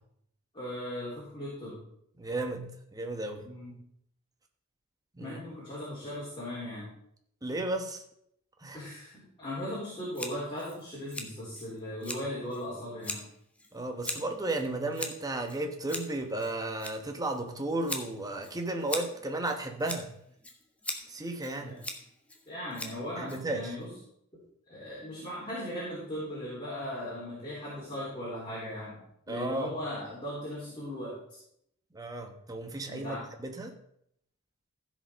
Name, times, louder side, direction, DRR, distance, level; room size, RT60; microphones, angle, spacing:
voice 1, 0.5-1.8 3.4-3.7 5.2-6.9 8.7-13.2 21.6-21.8 22.5-23.9 24.7-29.0 29.3-31.2 32.9-33.3, left 1 dB, 25° left, -8 dB, 3.8 m, -38 dB
voice 2, 2.2-2.6 2.9-3.4 5.2-5.4 7.4-8.0 8.6-8.8 13.7-20.1 21.1-21.8 23.2-23.7 29.3-29.7 31.9-33.7, right 2 dB, 15° right, 4 dB, 1.1 m, -34 dB
Scissors, 10.1-23.8, left 1 dB, 5° left, 1.1 m, -42 dB
15.0 x 5.3 x 5.1 m, 0.72 s
head